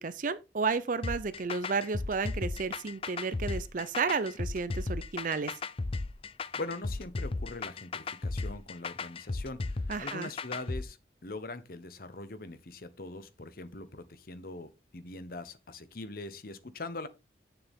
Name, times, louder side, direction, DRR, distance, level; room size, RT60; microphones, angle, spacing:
voice 1, 0.0-5.5 9.9-10.3, right 4 dB, 45° right, 0.5 m, -32 dB
sound 1, 1.0-10.8, left 3 dB, 30° left, 0.4 m, -35 dB
voice 2, 6.5-11.0 11.2-17.1, left 2 dB, 55° left, 1.0 m, -42 dB
8.9 x 6.9 x 3.6 m
head